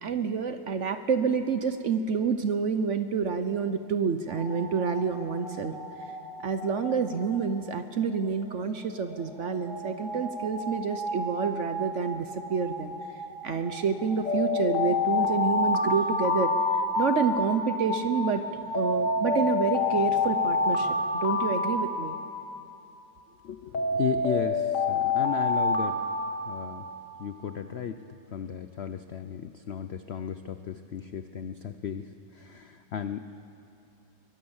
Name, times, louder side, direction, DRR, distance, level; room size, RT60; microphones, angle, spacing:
voice 1, 0.0-5.7 6.4-12.9 13.4-16.5 17.0-18.4 18.7-21.0 21.2-22.1, right 6 dB, 55° right, 9 dB, 0.9 m, -28 dB
sound 1, 4.3-21.0, left 1 dB, 15° left, 3.9 m, -35 dB
Alarm, 14.3-17.6 18.7-22.6 23.7-27.0, left 3 dB, 45° left, 1.9 m, -27 dB
voice 2, 23.4-26.0 26.5-26.8 27.2-28.0 28.3-33.3, left 9 dB, 75° left, 10 dB, 0.6 m, -35 dB
23.5 x 16.0 x 7.2 m, 2.8 s
omnidirectional pair, 1.9 m